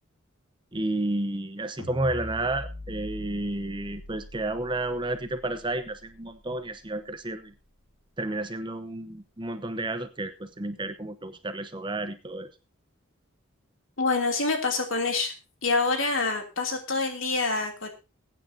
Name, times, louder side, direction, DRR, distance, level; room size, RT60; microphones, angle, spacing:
voice 1, 0.7-7.5 8.2-12.5, right 2 dB, 25° right, 9 dB, 0.9 m, -31 dB
sound 1, 1.8-8.1, left 1 dB, 85° left, 2.5 m, -43 dB
voice 2, 14.0-15.3 15.6-17.9, left 3 dB, 65° left, 3 dB, 3.0 m, -26 dB
21.5 x 9.2 x 2.8 m, 0.29 s
head